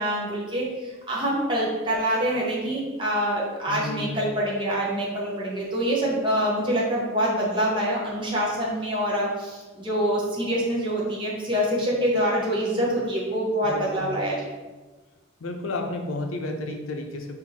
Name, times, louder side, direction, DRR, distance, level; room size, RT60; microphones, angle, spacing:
voice 1, 0.0-14.4, equal, 25° right, -5 dB, 0.7 m, -25 dB
voice 2, 3.7-4.2 13.6-14.2 15.4-17.4, left 2 dB, 80° left, 4 dB, 0.5 m, -32 dB
4.5 x 2.5 x 4.1 m, 1.3 s
head